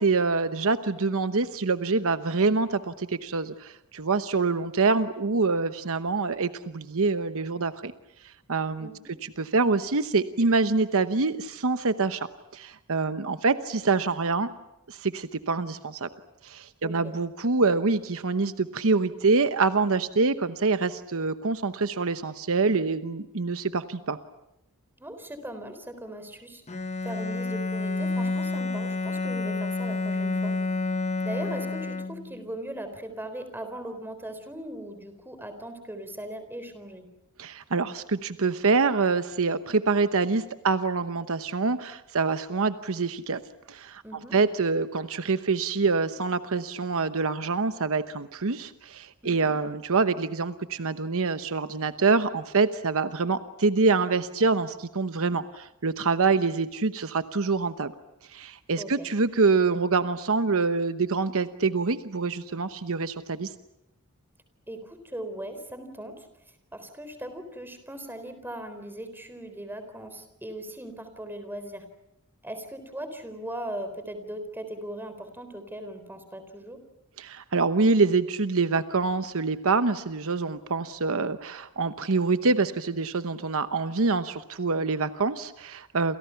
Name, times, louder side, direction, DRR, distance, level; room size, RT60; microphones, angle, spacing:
voice 1, 0.0-7.9 8.2-8.9 9.2-12.3 12.5-14.5 14.9-16.1 16.4-24.2 37.4-43.4 43.7-44.0 44.3-57.9 58.3-63.5 77.2-86.2, right 4 dB, 65° right, 11 dB, 1.0 m, -25 dB
voice 2, 16.8-17.1 25.0-26.6 27.0-30.5 31.2-37.1 44.0-44.3 49.2-49.5 58.8-59.1 64.7-66.3 66.7-71.9 72.4-76.8, right 1 dB, 10° right, 9 dB, 4.0 m, -39 dB
Bowed string instrument, 26.7-32.5, left 3 dB, 30° left, 1.1 m, -29 dB
29.0 x 28.5 x 5.9 m, 0.85 s
head